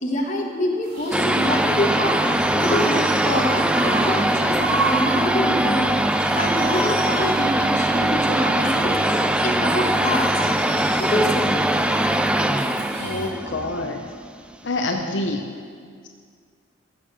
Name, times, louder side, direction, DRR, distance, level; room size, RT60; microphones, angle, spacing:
voice 1, 0.0-4.6 4.9-10.7 11.0-11.7, left 1 dB, 40° left, 0 dB, 1.5 m, -26 dB
sound 1, 0.8-13.3, right 2 dB, 80° right, 3.8 m, -33 dB
sound 2, 1.1-14.5, right 1 dB, 5° right, 0.3 m, -21 dB
voice 2, 13.0-14.1 14.6-15.5, left 2 dB, 75° left, 3 dB, 0.7 m, -27 dB
14.0 x 6.7 x 6.7 m, 2.1 s
head